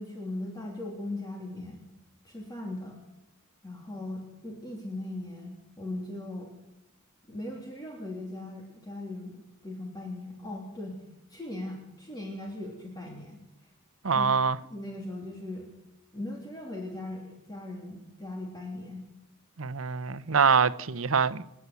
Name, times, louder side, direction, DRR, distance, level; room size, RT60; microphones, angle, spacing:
voice 1, 0.0-1.8 2.2-3.0 3.6-6.5 7.3-11.0 11.3-13.4 14.1-14.3 14.7-15.7 16.1-19.0, left 1 dB, 20° left, 3.1 m, -39 dB
voice 2, 14.0-14.6 19.6-21.4, right 5 dB, 70° right, 0.8 m, -24 dB
29.0 x 9.7 x 9.5 m
head